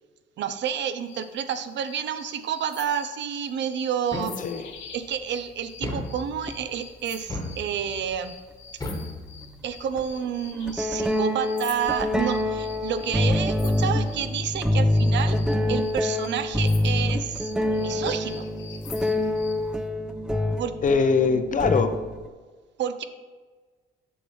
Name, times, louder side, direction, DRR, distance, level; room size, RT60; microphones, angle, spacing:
voice 1, 0.4-4.4 4.9-8.3 9.6-15.4 15.7-17.5 17.8-18.5 20.6-20.8 22.8-23.0, right 8 dB, 65° right, 10 dB, 0.5 m, -29 dB
sound 1, 1.1-14.3 14.9-19.6, left 6 dB, 70° left, 0.9 m, -46 dB
sound 2, 4.1-4.8 5.8-6.7 7.3-8.1 8.8-9.8, left 1 dB, 15° left, 1.2 m, -35 dB
voice 2, 4.4-4.7 20.8-21.9, left 5 dB, 40° left, 9 dB, 0.6 m, -22 dB
sound 3, 6.5-6.6 8.1-8.2 10.0-10.1 10.7-22.3, left 1 dB, 5° right, 0.3 m, -25 dB
7.0 x 5.4 x 3.1 m, 1.4 s
cardioid pair, 90°, 20 cm